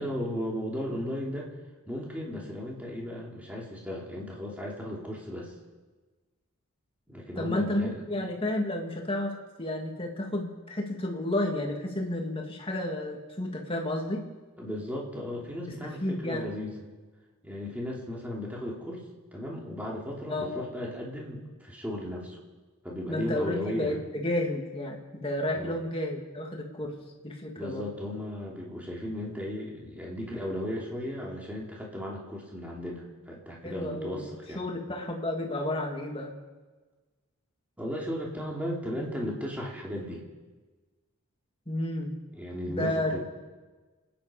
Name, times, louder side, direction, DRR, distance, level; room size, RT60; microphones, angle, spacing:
voice 1, 0.0-1.5 1.9-5.5 7.1-8.1 14.6-16.7 17.4-19.0 19.3-22.4 22.8-24.0 25.5-25.7 26.8-26.9 27.6-34.6 37.8-40.3 42.3-43.2, equal, 5° right, -3 dB, 3.0 m, -36 dB
voice 2, 7.4-9.3 9.6-14.2 15.7-16.5 20.3-20.5 23.1-27.0 27.2-27.9 33.6-34.3 34.6-36.3 41.7-42.1 42.7-43.2, left 1 dB, 25° left, 1 dB, 2.2 m, -31 dB
27.5 x 10.0 x 5.1 m, 1.3 s
head